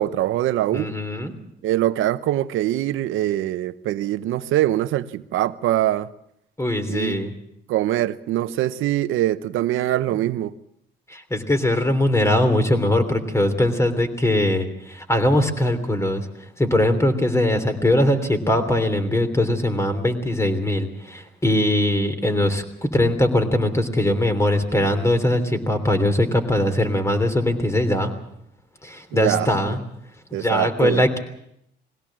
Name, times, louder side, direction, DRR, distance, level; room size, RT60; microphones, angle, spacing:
voice 1, 0.0-0.9 1.6-6.1 6.9-7.2 7.7-10.5 29.1-29.8 30.3-31.2, right 13 dB, 90° right, 0.8 m, -23 dB
voice 2, 0.7-1.4 6.6-7.3 11.1-16.3 16.6-28.1 28.8-29.8 30.3-31.2, left 1 dB, 15° left, 3.2 m, -21 dB
22.0 x 17.0 x 7.5 m
cardioid pair, 90°, 20 cm